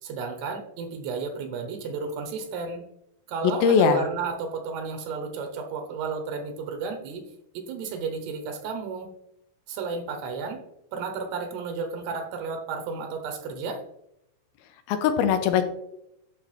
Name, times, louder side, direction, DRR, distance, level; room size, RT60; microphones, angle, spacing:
voice 1, 0.0-2.8 3.3-7.2 7.5-9.1 9.7-10.6 10.9-13.8, right 4 dB, 85° right, 5 dB, 3.1 m, -32 dB
voice 2, 3.6-4.0 14.9-15.6, left 7 dB, 80° left, 8 dB, 2.5 m, -20 dB
11.0 x 4.9 x 3.4 m, 0.80 s
omnidirectional pair, 4.7 m